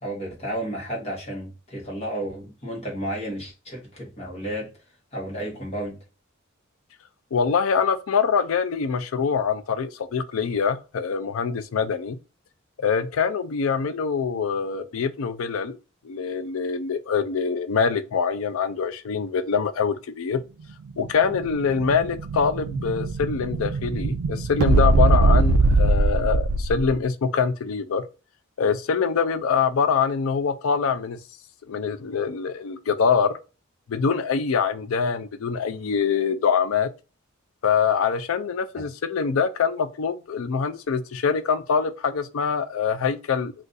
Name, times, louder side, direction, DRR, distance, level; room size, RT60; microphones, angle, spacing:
voice 1, 0.0-4.7 5.1-6.0, right 1 dB, 30° left, 1.1 m, -32 dB
voice 2, 7.3-12.2 12.8-15.8 16.0-20.4 21.0-28.0 28.6-31.2 31.7-33.3 33.9-36.9 37.6-43.5, left 6 dB, 75° left, 0.4 m, -24 dB
Explosion, 20.9-27.0, right 3 dB, 80° right, 0.4 m, -21 dB
2.5 x 2.5 x 3.8 m
head